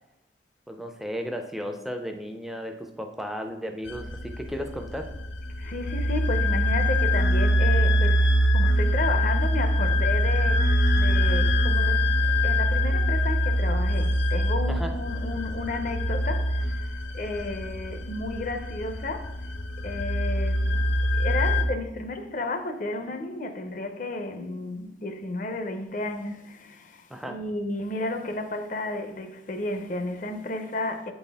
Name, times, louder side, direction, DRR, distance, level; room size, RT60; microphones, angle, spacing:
voice 1, 0.7-5.1 14.7-14.9 27.1-27.4, equal, ahead, 0.4 m, -34 dB
sound 1, 3.9-21.6, equal, 85° left, 0.6 m, -24 dB
voice 2, 5.6-12.1 12.4-19.3 19.8-20.8 21.2-31.1, left 2 dB, 45° left, 0.6 m, -33 dB
8.7 x 4.1 x 3.4 m
head